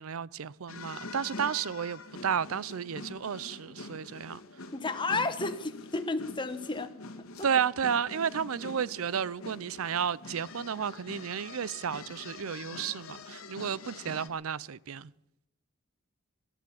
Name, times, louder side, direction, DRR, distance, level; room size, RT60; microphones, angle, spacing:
voice 1, 0.0-4.4 5.1-5.2 7.4-15.1, right 7 dB, 70° right, 0.5 m, -32 dB
sound 1, 0.7-14.3, left 3 dB, 70° left, 1.6 m, -45 dB
voice 2, 4.7-6.9 7.4-7.5, left 3 dB, 20° left, 1.0 m, -32 dB
14.0 x 12.0 x 8.4 m
head